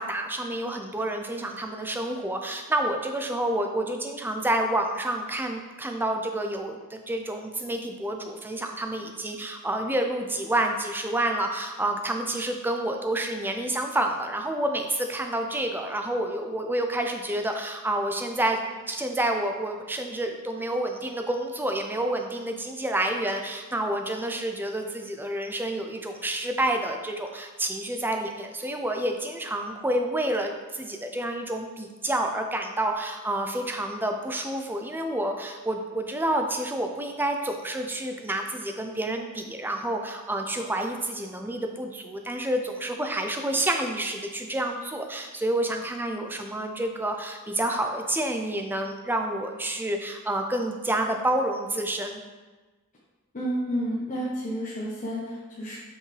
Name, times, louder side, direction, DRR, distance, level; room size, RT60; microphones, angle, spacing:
voice 1, 0.0-52.2, right 1 dB, 10° right, 4 dB, 0.4 m, -29 dB
voice 2, 53.3-55.8, equal, 35° left, -7 dB, 1.0 m, -30 dB
5.9 x 5.2 x 3.3 m, 1.3 s
head